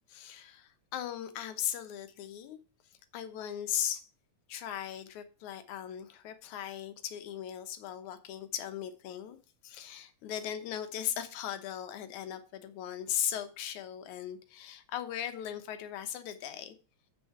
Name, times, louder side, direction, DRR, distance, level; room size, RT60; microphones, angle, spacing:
voice 1, 0.1-2.6 3.1-4.1 4.5-9.4 9.6-16.8, left 10 dB, 85° left, 2.4 m, -38 dB
8.4 x 6.4 x 4.7 m
omnidirectional pair, 3.3 m